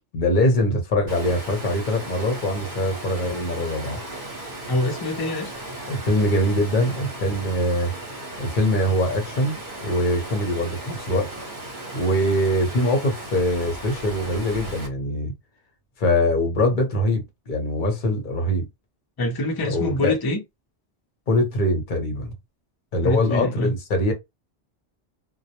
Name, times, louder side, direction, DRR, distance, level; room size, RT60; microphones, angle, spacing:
voice 1, 0.1-4.0 5.9-7.9 8.4-11.3 11.9-15.3 16.0-18.7 19.6-20.1 21.3-22.3 22.9-24.1, left 1 dB, 50° left, 0.8 m, -23 dB
Water, 1.1-14.9, right 1 dB, 50° right, 0.9 m, -36 dB
voice 2, 4.7-5.5 19.2-20.4 23.0-23.7, left 1 dB, 30° left, 0.4 m, -24 dB
2.2 x 2.0 x 2.8 m
omnidirectional pair, 1.2 m